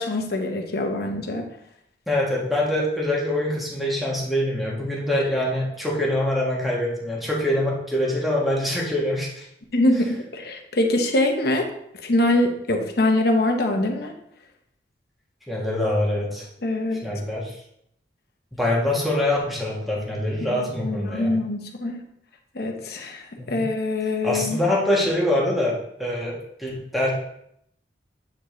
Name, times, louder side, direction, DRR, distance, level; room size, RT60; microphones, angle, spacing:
voice 1, 0.0-1.5 9.7-11.7 12.0-14.1 16.6-17.0 20.5-22.0 22.5-24.6, left 1 dB, 60° left, 3 dB, 0.9 m, -24 dB
voice 2, 2.1-9.5 15.5-16.4 17.0-17.6 18.5-21.3 23.4-23.7 24.2-27.1, left 1 dB, ahead, -5 dB, 1.4 m, -24 dB
8.5 x 4.3 x 3.1 m, 0.74 s
head